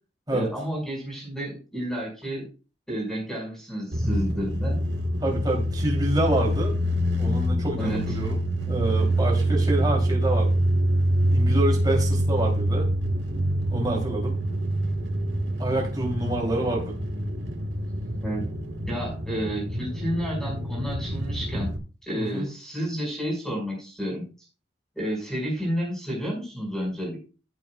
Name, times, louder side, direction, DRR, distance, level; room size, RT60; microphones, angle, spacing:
voice 1, 0.3-2.5 2.9-4.8 7.8-8.1 18.2-18.5 18.9-21.7 22.0-24.3 25.0-27.3, equal, 5° left, -1 dB, 5.7 m, -31 dB
sound 1, 3.9-21.8, right 1 dB, 70° right, 1.7 m, -26 dB
voice 2, 5.2-6.7 7.2-8.4 8.7-10.6 11.3-12.9 13.7-14.4 15.6-16.9 22.2-22.5, right 1 dB, 20° right, 0 dB, 3.3 m, -27 dB
14.5 x 8.2 x 2.4 m, 0.34 s
head